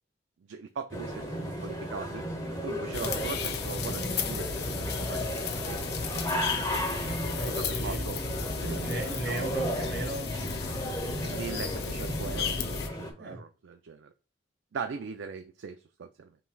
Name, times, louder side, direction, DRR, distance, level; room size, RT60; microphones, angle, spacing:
voice 1, 0.4-2.3 2.6-5.8 7.5-8.2 8.6-9.4 11.2-14.1 14.7-16.4, right 5 dB, 85° right, 0.4 m, -40 dB
sound 1, 0.9-13.1, equal, 20° left, 1.0 m, -34 dB
sound 2, 2.9-12.9, left 5 dB, 60° left, 0.5 m, -34 dB
voice 2, 7.1-8.0 8.8-10.3 13.2-13.4, right 2 dB, 65° right, 2.0 m, -36 dB
5.7 x 3.1 x 2.3 m
head